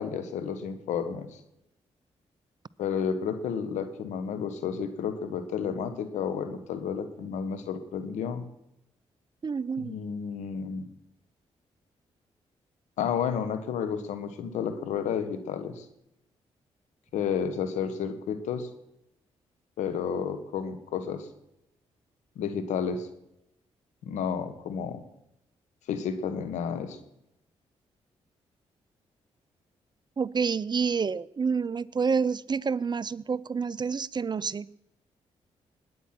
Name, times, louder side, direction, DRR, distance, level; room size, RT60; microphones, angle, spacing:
voice 1, 0.0-1.4 2.8-8.4 9.8-10.9 13.0-15.8 17.1-18.7 19.8-21.3 22.3-23.1 24.0-25.0 25.9-27.0, left 7 dB, 90° left, 10 dB, 1.5 m, -31 dB
voice 2, 9.4-9.9 30.2-34.7, right 5 dB, 40° right, 19 dB, 0.6 m, -28 dB
20.5 x 9.4 x 6.0 m, 0.83 s
supercardioid pair, 60°, 12 cm